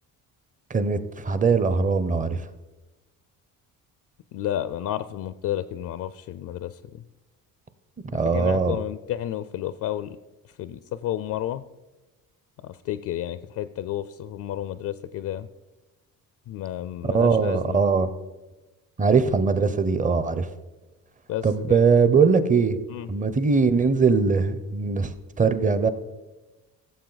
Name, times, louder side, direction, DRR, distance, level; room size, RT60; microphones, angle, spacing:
voice 1, 0.7-2.4 8.1-8.8 17.0-18.1 19.0-20.5 21.4-22.8 23.1-25.9, right 5 dB, 20° right, 13 dB, 0.6 m, -21 dB
voice 2, 4.3-7.0 8.2-10.2 10.6-11.6 12.6-15.5 16.5-17.8 21.3-21.8 22.9-23.1, left 12 dB, 60° left, 14 dB, 0.5 m, -31 dB
16.0 x 7.2 x 4.0 m, 1.1 s
cardioid pair, 130°, 36 cm